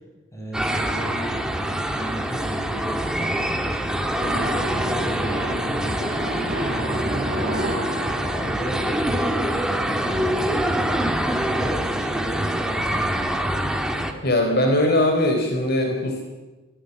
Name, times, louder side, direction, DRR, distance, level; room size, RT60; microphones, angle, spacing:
voice 1, 0.3-3.9 4.3-6.5 7.2-7.9 8.2-9.4 9.8-10.6 11.3-13.3, equal, 15° left, 1 dB, 7.1 m, -35 dB
sound 1, 0.5-14.1, right 1 dB, 5° right, 2.2 m, -25 dB
sound 2, 4.1-9.5, right 1 dB, 45° right, 7.9 m, -31 dB
voice 2, 14.2-16.2, left 1 dB, 50° left, 3 dB, 3.9 m, -20 dB
23.5 x 19.0 x 9.7 m, 1.2 s
head